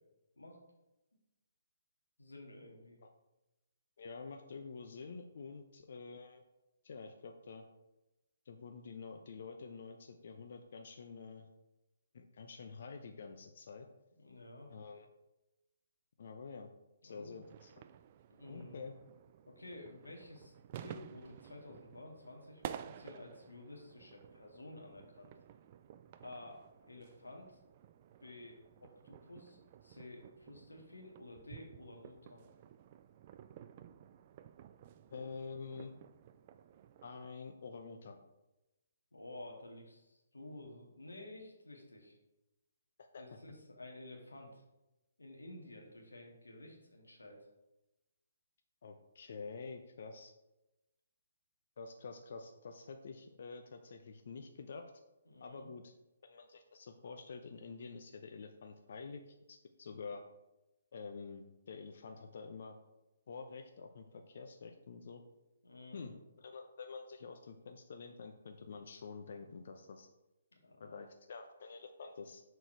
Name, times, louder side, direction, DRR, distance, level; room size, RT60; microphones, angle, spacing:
voice 1, 2.2-3.0 14.2-14.7 17.0-17.4 18.3-18.8 19.5-25.3 26.2-26.6 26.9-27.6 28.2-32.4 39.1-42.2 43.2-44.6 45.2-47.4 55.3-55.7 65.6-66.1 70.6-71.0, left 2 dB, 80° left, 0 dB, 1.9 m, -52 dB
voice 2, 4.0-6.4 6.8-7.7 8.5-11.5 12.1-13.9 14.7-15.1 16.2-16.7 17.0-17.8 18.5-18.9 35.1-35.9 37.0-38.2 43.0-43.2 48.8-50.3 51.8-54.8 55.4-55.9 56.2-60.2 60.9-62.8 63.3-65.2 65.9-70.1 70.8-72.4, left 4 dB, 55° left, 5 dB, 0.6 m, -48 dB
sound 1, 17.4-37.3, right 10 dB, 40° right, 0.3 m, -53 dB
6.3 x 4.5 x 4.5 m, 0.98 s
figure-of-eight pair, 135°, 0 cm